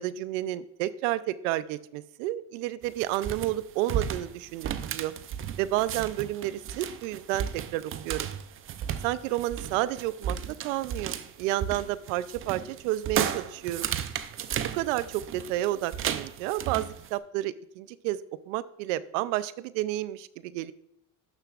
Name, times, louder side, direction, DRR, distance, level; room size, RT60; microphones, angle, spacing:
voice 1, 0.0-5.1 5.6-8.3 9.0-10.4 10.6-13.9 14.7-18.2 18.5-20.7, right 15 dB, 85° right, 17 dB, 0.5 m, -31 dB
sound 1, 2.8-17.1, right 9 dB, 35° right, 0.5 m, -34 dB
12.0 x 6.5 x 2.4 m, 0.77 s
supercardioid pair, 110°, 38 cm